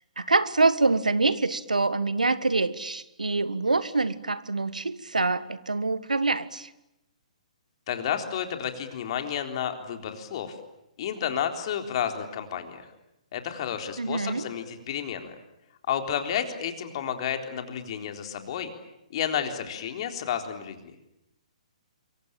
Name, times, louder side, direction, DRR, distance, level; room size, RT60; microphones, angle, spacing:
voice 1, 0.2-6.7 14.0-14.5, right 3 dB, 85° right, 16 dB, 1.5 m, -25 dB
voice 2, 7.9-10.6 11.0-12.9 13.3-15.3 15.9-18.7 19.1-20.9, left 9 dB, 45° left, 6 dB, 3.8 m, -31 dB
27.5 x 24.0 x 9.0 m, 0.87 s
figure-of-eight pair, 130°, 4 cm